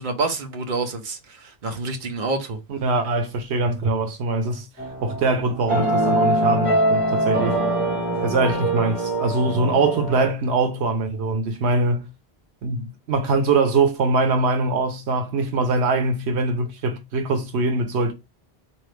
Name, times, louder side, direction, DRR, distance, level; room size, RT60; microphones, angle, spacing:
voice 1, 0.0-2.6, right 3 dB, 50° right, 1.0 m, -27 dB
voice 2, 2.7-4.7 5.0-7.6 8.2-12.1 12.6-18.1, right 3 dB, 90° right, 1.1 m, -22 dB
sound 1, 4.8-10.3, right 1 dB, 10° right, 2.5 m, -23 dB
3.8 x 2.9 x 3.3 m
omnidirectional pair, 1.1 m